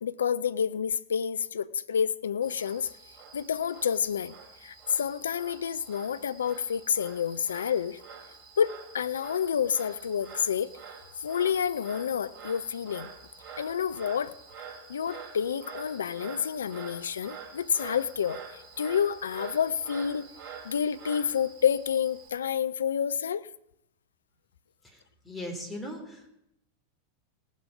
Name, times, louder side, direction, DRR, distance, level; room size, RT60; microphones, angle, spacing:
voice 1, 0.0-2.9 3.3-8.0 8.6-10.7 11.2-13.1 13.6-14.3 14.9-20.3 20.6-23.5, left 8 dB, 65° left, 15 dB, 0.5 m, -29 dB
Frog, 2.4-22.3, right 6 dB, 35° right, 3.0 m, -47 dB
voice 2, 24.8-26.3, left 1 dB, 5° left, 0 dB, 3.4 m, -39 dB
18.0 x 7.3 x 5.6 m, 0.83 s
figure-of-eight pair, 90°, 0 cm